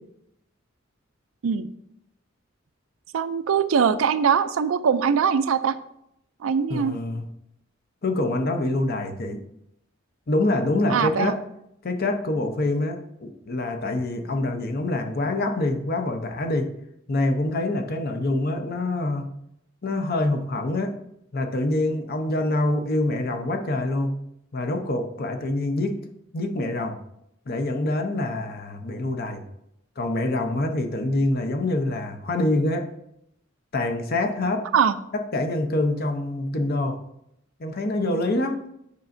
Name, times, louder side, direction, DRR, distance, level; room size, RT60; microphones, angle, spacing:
voice 1, 3.1-5.7 6.4-6.9 10.9-11.4 34.7-34.9, right 7 dB, 85° right, 12 dB, 0.4 m, -22 dB
voice 2, 6.7-7.3 8.0-9.4 10.3-11.4 11.8-16.7 17.1-19.3 19.8-20.9 21.3-24.2 24.5-26.0 26.3-27.0 27.5-29.4 30.0-32.9 33.7-34.7 35.1-37.0 37.6-38.6, left 2 dB, 50° left, 6 dB, 0.7 m, -25 dB
8.3 x 5.1 x 2.6 m, 0.79 s
head